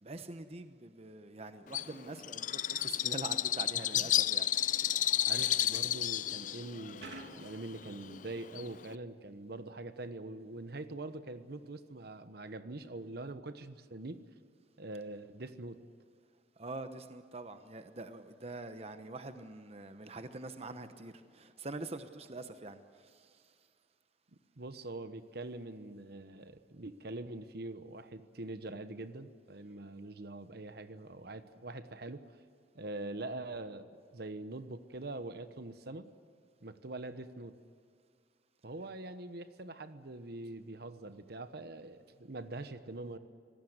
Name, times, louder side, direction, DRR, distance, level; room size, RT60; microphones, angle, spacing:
voice 1, 0.0-4.5 5.3-5.7 16.6-23.4, right 2 dB, 35° right, 1.0 m, -45 dB
Bird, 1.7-9.0, left 11 dB, 45° left, 0.5 m, -32 dB
voice 2, 5.3-14.2 14.8-15.8 24.6-32.2 32.7-36.1 36.6-37.5 38.6-43.2, right 2 dB, 65° right, 1.1 m, -44 dB
sound 1, 7.0-8.6, right 2 dB, 80° right, 2.8 m, -50 dB
25.5 x 18.0 x 8.1 m
head